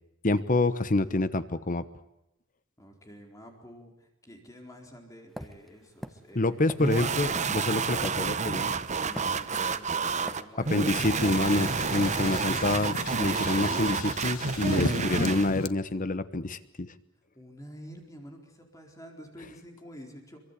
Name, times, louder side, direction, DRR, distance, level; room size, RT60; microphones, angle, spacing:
voice 1, 0.2-1.8 6.3-8.7 10.7-16.9, left 2 dB, 40° left, 13 dB, 1.1 m, -27 dB
voice 2, 2.8-6.6 9.0-11.5 17.3-20.4, equal, 15° left, 2 dB, 4.3 m, -48 dB
sound 1, 5.4-8.6 9.2-9.8 10.3-10.5, equal, ahead, 1.4 m, -42 dB
sound 2, 6.8-15.5, right 5 dB, 35° right, 1.0 m, -29 dB
sound 3, 11.0-15.7, left 3 dB, 90° left, 1.3 m, -35 dB
25.0 x 24.0 x 8.3 m, 0.85 s
head